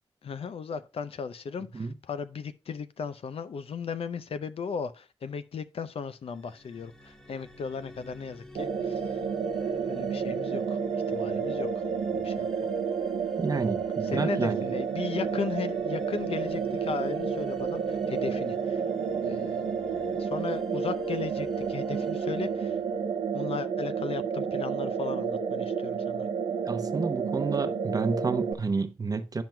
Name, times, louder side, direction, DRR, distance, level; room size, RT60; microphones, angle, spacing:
voice 1, 0.2-9.2 9.5-10.8 11.1-11.8 12.2-12.5 14.0-18.8 19.2-22.8 23.3-26.3, left 6 dB, 70° left, 0.5 m, -36 dB
sound 1, 6.3-23.4, left 2 dB, 5° left, 0.8 m, -50 dB
sound 2, 8.6-28.5, right 6 dB, 90° right, 0.5 m, -30 dB
voice 2, 13.4-14.6 26.6-29.4, right 4 dB, 35° right, 0.7 m, -30 dB
10.5 x 5.9 x 2.2 m
wide cardioid pair, 105°, 10 cm